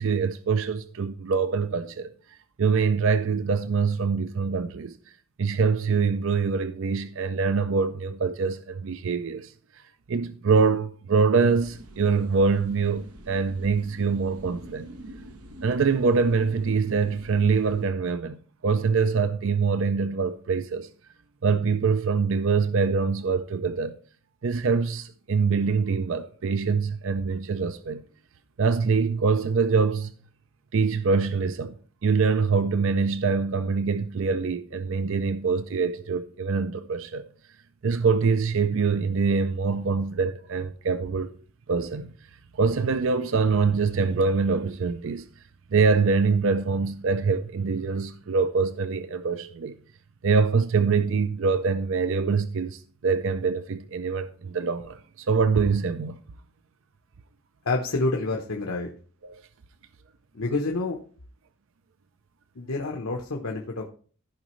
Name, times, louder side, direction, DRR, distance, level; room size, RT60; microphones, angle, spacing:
voice 1, 0.0-2.1 2.6-5.0 5.4-9.5 10.1-14.9 15.6-20.9 21.4-24.0 24.4-28.0 28.6-30.1 30.7-31.7 32.0-37.2 37.8-41.3 41.7-42.1 42.5-45.3 45.7-49.8 50.2-56.2 59.2-59.4, right 5 dB, 60° right, 0.5 m, -24 dB
sound 1, 11.5-17.9, right 1 dB, 85° right, 1.0 m, -45 dB
voice 2, 57.6-58.9 60.3-61.0 62.5-63.9, left 2 dB, 75° left, 1.0 m, -28 dB
14.5 x 5.1 x 3.1 m
head